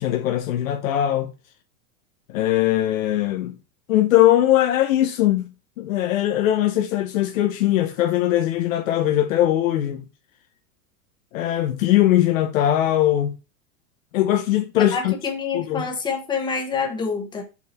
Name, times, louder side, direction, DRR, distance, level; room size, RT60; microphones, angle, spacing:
voice 1, 0.0-1.3 2.3-3.6 3.9-5.4 5.8-10.0 11.3-13.3 14.1-15.1 15.5-15.9, left 13 dB, 60° left, 1.1 m, -20 dB
voice 2, 14.9-17.4, left 5 dB, 10° left, 1.3 m, -27 dB
6.2 x 5.9 x 4.4 m
supercardioid pair, 170°, 44 cm